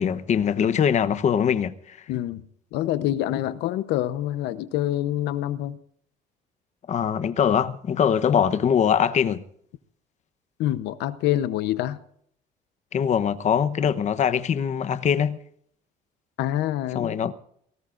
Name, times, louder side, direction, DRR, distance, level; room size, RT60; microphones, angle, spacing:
voice 1, 0.0-2.0 6.9-9.4 12.9-15.4 16.9-17.3, left 8 dB, 45° left, 1.0 m, -22 dB
voice 2, 2.1-2.4 2.7-5.8 10.6-12.0 16.4-17.1, left 13 dB, 85° left, 0.9 m, -26 dB
29.0 x 18.0 x 2.6 m
cardioid pair, 110°, 17 cm